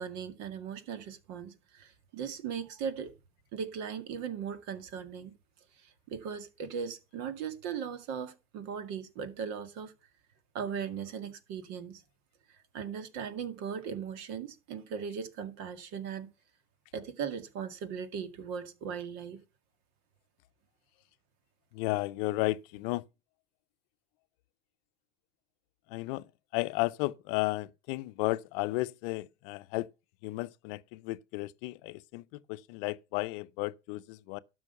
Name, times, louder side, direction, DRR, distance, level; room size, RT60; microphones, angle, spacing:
voice 1, 0.0-3.1 3.5-5.3 5.8-9.9 10.5-12.0 12.5-16.3 16.9-19.4, right 7 dB, 50° right, 2.0 m, -38 dB
voice 2, 21.7-23.1 25.9-26.3 26.5-29.9 30.2-34.4, left 20 dB, 55° left, 0.8 m, -33 dB
12.0 x 6.2 x 5.4 m
supercardioid pair, 125°, 34 cm